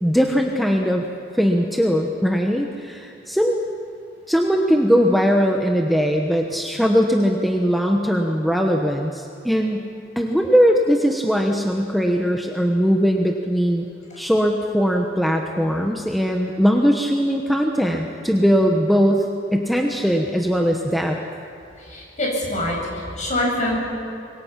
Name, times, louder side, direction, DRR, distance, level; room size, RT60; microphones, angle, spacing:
voice 1, 0.0-1.0 1.3-3.6 4.3-9.9 10.2-13.8 14.2-21.2, equal, ahead, 1 dB, 1.1 m, -20 dB
voice 2, 21.8-23.8, left 1 dB, 40° left, -2 dB, 7.2 m, -25 dB
26.0 x 22.5 x 5.9 m, 2.7 s
head